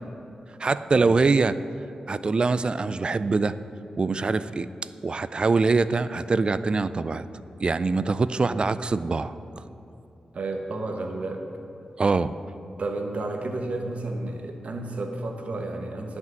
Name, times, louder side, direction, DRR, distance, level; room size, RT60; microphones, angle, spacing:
voice 1, 0.6-1.6 2.1-3.5 4.0-4.7 5.0-7.2 7.6-9.3 12.0-12.3, right 4 dB, 40° right, 14 dB, 0.4 m, -23 dB
voice 2, 10.3-11.5 12.8-16.2, right 2 dB, 65° right, 3 dB, 1.2 m, -31 dB
11.0 x 6.0 x 7.6 m, 2.9 s
cardioid pair, 70°, 2 cm